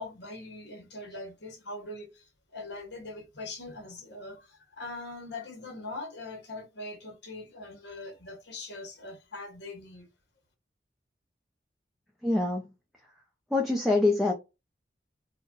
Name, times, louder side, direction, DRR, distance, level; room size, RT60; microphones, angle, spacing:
voice 1, 0.0-10.1, left 2 dB, 75° left, 1.2 m, -42 dB
voice 2, 12.2-12.7 13.5-14.4, left 2 dB, ahead, 0.5 m, -25 dB
4.0 x 2.2 x 2.4 m
head